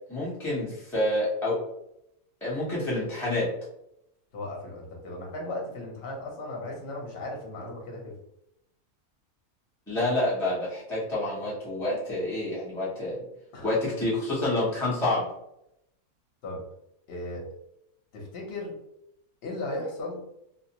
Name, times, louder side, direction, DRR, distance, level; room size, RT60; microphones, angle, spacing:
voice 1, 0.1-1.6 2.4-3.5 9.9-13.2 13.6-15.3, left 1 dB, ahead, -9 dB, 0.6 m, -28 dB
voice 2, 4.3-8.2 13.5-13.7 16.4-16.6 17.1-17.5 18.1-18.7 19.4-20.2, left 2 dB, 50° left, -2 dB, 1.0 m, -36 dB
2.5 x 2.1 x 2.8 m, 0.78 s
omnidirectional pair, 1.6 m